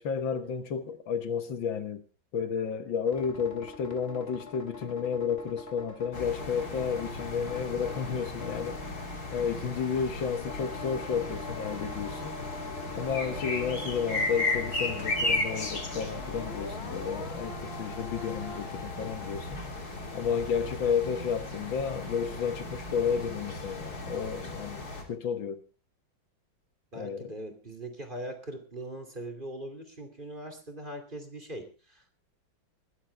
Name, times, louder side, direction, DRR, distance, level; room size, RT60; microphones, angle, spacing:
voice 1, 0.0-2.0 2.3-8.9 9.3-12.4 13.0-19.6 20.1-25.6 27.0-27.3, left 6 dB, 75° left, 2.0 m, -32 dB
sound 1, 3.0-9.9 10.4-18.6, left 3 dB, 30° left, 2.2 m, -43 dB
sound 2, 6.1-25.0, left 2 dB, 50° left, 3.4 m, -36 dB
voice 2, 26.9-32.2, right 1 dB, 25° right, 2.8 m, -41 dB
20.0 x 15.0 x 3.4 m
omnidirectional pair, 2.1 m